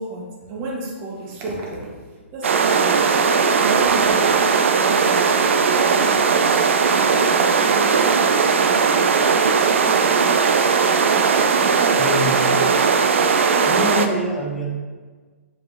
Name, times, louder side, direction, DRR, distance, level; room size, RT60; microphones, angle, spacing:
voice 1, 0.0-2.0 2.3-6.6 7.1-8.4 8.7-9.3 11.6-12.1 12.5-13.0 13.5-14.3, right 2 dB, 30° right, -2 dB, 1.5 m, -33 dB
sound 1, 2.4-14.1, right 5 dB, 60° right, 0.5 m, -18 dB
voice 2, 12.0-12.6 13.7-14.7, equal, 5° left, -4 dB, 1.1 m, -25 dB
6.6 x 4.7 x 3.5 m, 1.4 s
figure-of-eight pair, 120°, 7 cm